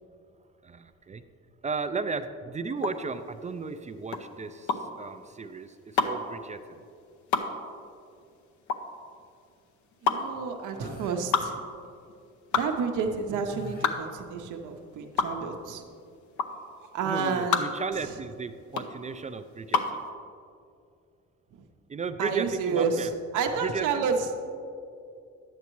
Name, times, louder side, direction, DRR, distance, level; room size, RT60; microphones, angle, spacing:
voice 1, 0.6-1.3 1.6-6.8 17.0-20.0 21.9-23.1 23.6-24.1, right 4 dB, 25° right, 10 dB, 0.3 m, -35 dB
sound 1, 2.8-20.0, left 5 dB, 70° left, 0.8 m, -30 dB
voice 2, 10.0-11.6 12.5-15.8 16.9-18.2 22.2-24.4, right 5 dB, 85° right, 4 dB, 0.7 m, -30 dB
sound 2, 10.7-11.3 13.5-14.2, left 2 dB, 30° left, 1.2 m, -42 dB
10.5 x 8.3 x 3.1 m, 2.4 s
cardioid pair, 90°, 30 cm